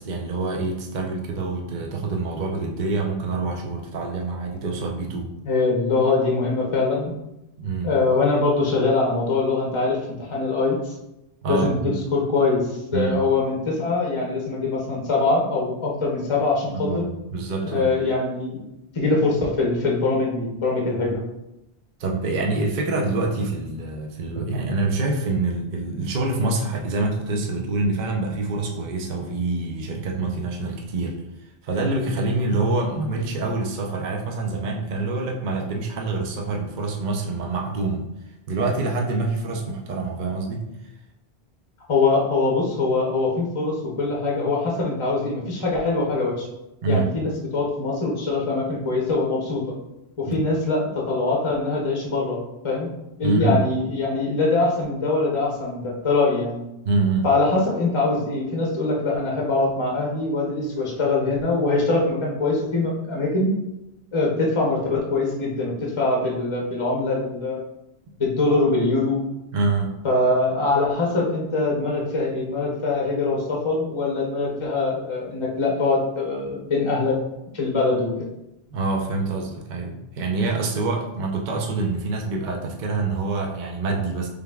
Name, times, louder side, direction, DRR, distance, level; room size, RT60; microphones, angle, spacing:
voice 1, 0.0-5.3 7.6-7.9 11.4-12.0 12.9-13.2 16.7-17.0 17.3-17.9 22.0-31.2 31.6-38.1 38.5-40.7 46.8-47.0 50.3-50.4 53.2-53.6 56.8-57.3 69.5-69.9 78.7-84.3, right 3 dB, 50° right, 1 dB, 0.7 m, -26 dB
voice 2, 5.4-7.1 7.8-10.9 11.5-17.1 17.7-18.6 18.9-21.2 41.9-46.5 46.9-49.6 50.2-52.4 52.6-52.9 53.2-56.6 57.2-63.5 64.1-67.6 68.2-69.2 70.0-77.2 77.5-78.1, left 3 dB, 30° left, -2 dB, 0.7 m, -23 dB
5.1 x 3.3 x 2.3 m, 0.90 s
omnidirectional pair, 1.1 m